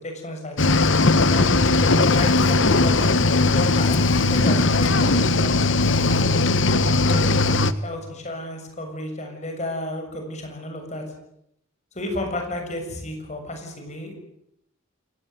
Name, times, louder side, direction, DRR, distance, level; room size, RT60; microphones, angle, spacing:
voice 1, 0.0-0.6 1.2-3.1 3.5-5.6 5.9-6.3 7.1-11.1 11.9-14.2, left 1 dB, 35° left, 4 dB, 7.0 m, -32 dB
Cricket / Waves surf, 0.6-7.7, left 3 dB, 60° left, 1.2 m, -19 dB
28.5 x 18.0 x 9.3 m, 0.77 s
head